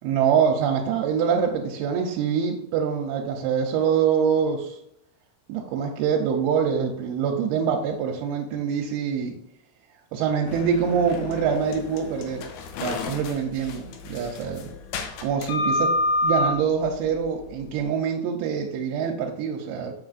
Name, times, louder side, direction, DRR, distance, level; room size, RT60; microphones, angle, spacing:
voice 1, 0.0-4.8 5.5-9.4 10.1-12.5 12.8-14.7 15.2-15.9 16.2-19.9, right 7 dB, 85° right, 1 dB, 2.6 m, -25 dB
sound 1, 10.5-17.8, left 2 dB, 80° left, 1.9 m, -29 dB
7.0 x 6.1 x 2.5 m, 0.75 s
omnidirectional pair, 4.4 m